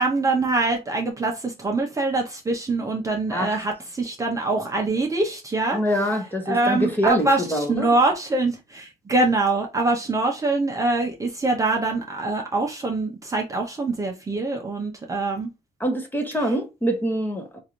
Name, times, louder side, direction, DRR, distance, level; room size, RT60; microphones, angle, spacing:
voice 1, 0.0-5.8 6.5-15.5, right 3 dB, 20° right, 0.7 m, -24 dB
voice 2, 3.3-3.6 5.7-7.9 15.8-17.6, equal, 10° left, 0.9 m, -25 dB
3.7 x 2.6 x 3.0 m
cardioid pair, 110°, 17 cm